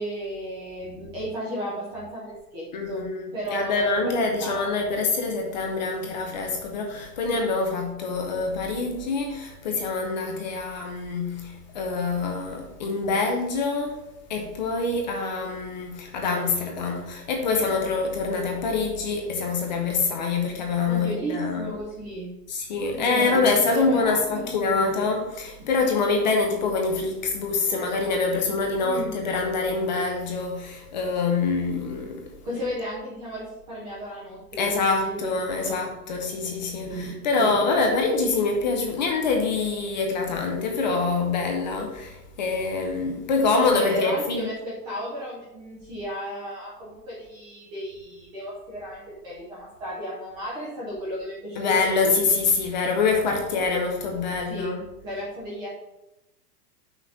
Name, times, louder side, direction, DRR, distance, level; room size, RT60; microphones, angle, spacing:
voice 1, 0.0-4.1 4.4-4.9 7.3-7.5 20.8-22.3 22.9-25.2 25.6-25.7 28.8-29.2 32.4-35.9 36.8-37.7 43.7-52.1 54.5-55.7, equal, 10° right, 0.6 m, -34 dB
voice 2, 2.7-14.0 14.3-21.7 22.5-32.3 34.6-44.5 51.6-54.8, left 4 dB, 30° left, 0.6 m, -25 dB
6.0 x 3.9 x 5.6 m
supercardioid pair, 170°, 48 cm